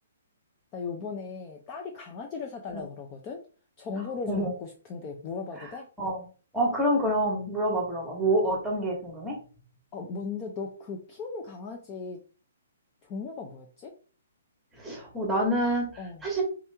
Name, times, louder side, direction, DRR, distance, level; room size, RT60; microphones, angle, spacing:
voice 1, 0.7-3.4 3.8-5.9 9.9-12.2 13.0-13.9 16.0-16.2, left 4 dB, 20° left, 3 dB, 0.4 m, -37 dB
voice 2, 6.5-9.4 14.7-16.4, right 1 dB, 5° right, -2 dB, 1.1 m, -27 dB
3.6 x 2.9 x 3.3 m, 0.38 s
hypercardioid pair, 170°, 0 cm